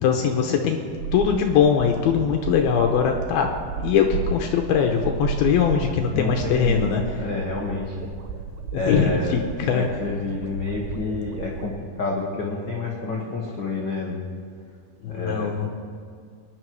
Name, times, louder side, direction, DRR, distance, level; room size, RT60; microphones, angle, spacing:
voice 1, 0.0-0.8 1.1-3.5 3.8-7.2 8.7-9.9 15.0-15.7, left 7 dB, 80° left, 3 dB, 2.6 m, -21 dB
sound 1, 0.8-11.7, right 6 dB, 85° right, 3.0 m, -33 dB
voice 2, 6.1-8.0 8.7-9.4 9.7-14.2 15.0-15.6, left 3 dB, 60° left, -2 dB, 1.1 m, -29 dB
22.5 x 11.0 x 4.7 m, 2.1 s
omnidirectional pair, 4.6 m